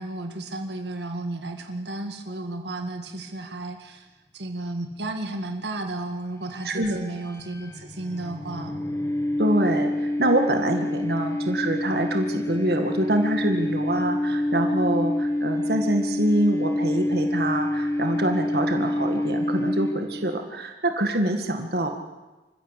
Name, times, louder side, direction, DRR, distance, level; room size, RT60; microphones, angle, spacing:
voice 1, 0.0-4.1 4.3-8.8, right 2 dB, 80° right, 5 dB, 2.1 m, -33 dB
sound 1, 6.3-20.3, left 1 dB, 15° left, 1.6 m, -27 dB
voice 2, 6.6-7.0 9.4-21.9, right 1 dB, 65° right, 5 dB, 2.0 m, -25 dB
26.5 x 15.0 x 8.3 m, 1.2 s
head